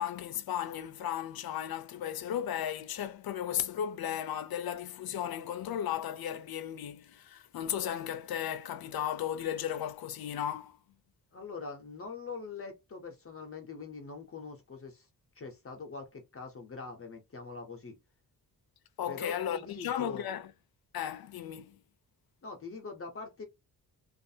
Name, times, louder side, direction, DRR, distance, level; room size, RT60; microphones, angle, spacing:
voice 1, 0.0-10.8 19.0-20.5 20.9-21.8, left 10 dB, 75° left, 0.5 m, -35 dB
voice 2, 11.3-15.1 15.4-18.0 19.1-20.3 22.4-23.5, left 4 dB, 40° left, 0.7 m, -43 dB
2.5 x 2.4 x 2.7 m
wide cardioid pair, 100°, 37 cm